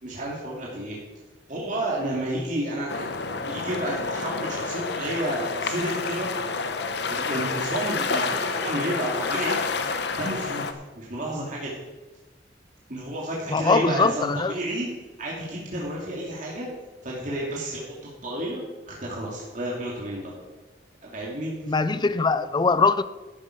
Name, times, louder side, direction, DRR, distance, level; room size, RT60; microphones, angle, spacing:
voice 1, 0.0-1.0 1.5-6.3 7.0-9.6 10.2-10.6 11.0-11.8 12.9-14.9 15.2-16.7 17.0-17.9 18.2-20.4 21.0-21.5 21.9-22.0, right 1 dB, 45° right, 2.3 m, -31 dB
sound 1, 2.9-10.7, left 4 dB, 65° left, 0.9 m, -29 dB
voice 2, 13.5-14.5 21.7-23.0, left 4 dB, 25° left, 0.4 m, -22 dB
12.0 x 9.0 x 5.1 m
head